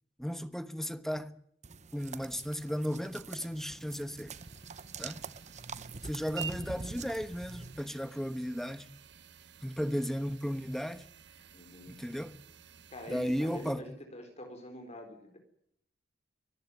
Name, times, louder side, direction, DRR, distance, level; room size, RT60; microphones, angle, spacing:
voice 1, 0.2-1.4 1.9-4.3 5.0-5.2 6.0-8.9 9.6-11.0 11.9-12.4 13.1-13.8, equal, ahead, 1.2 m, -35 dB
sound 1, 1.6-7.8, right 4 dB, 40° right, 0.9 m, -45 dB
sound 2, 4.3-13.7, right 7 dB, 70° right, 1.6 m, -51 dB
voice 2, 11.5-12.0 12.9-15.4, left 1 dB, 35° left, 4.3 m, -45 dB
24.0 x 14.5 x 9.5 m
head